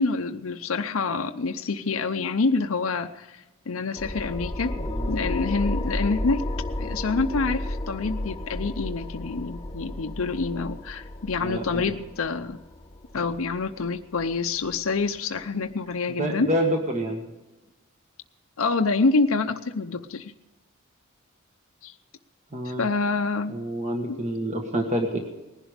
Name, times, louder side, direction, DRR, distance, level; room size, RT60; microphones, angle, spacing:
voice 1, 0.0-4.7 5.1-6.4 6.8-12.6 13.1-16.5 18.6-20.3 21.8-21.9 22.6-23.5 24.1-24.2, left 4 dB, 75° left, 5 dB, 0.7 m, -27 dB
sound 1, 4.0-15.0, left 1 dB, 20° left, 0.9 m, -33 dB
voice 2, 4.8-5.2 11.4-11.8 16.2-17.3 22.5-22.9 23.5-25.2, equal, 35° right, 3 dB, 1.6 m, -27 dB
19.5 x 11.0 x 5.1 m, 1.1 s
head